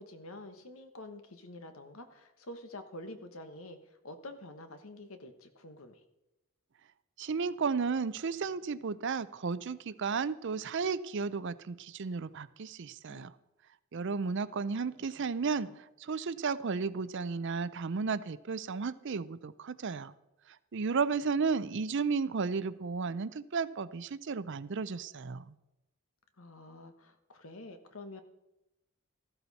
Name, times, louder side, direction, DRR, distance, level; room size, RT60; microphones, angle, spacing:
voice 1, 0.0-6.0 13.1-13.3 14.0-14.6 15.0-15.1 15.6-15.8 26.4-28.2, left 1 dB, 80° left, 8 dB, 1.3 m, -48 dB
voice 2, 7.2-13.3 13.9-15.7 16.0-20.1 20.7-25.5, right 5 dB, 60° right, 16 dB, 0.5 m, -33 dB
14.5 x 12.0 x 4.2 m, 0.92 s
head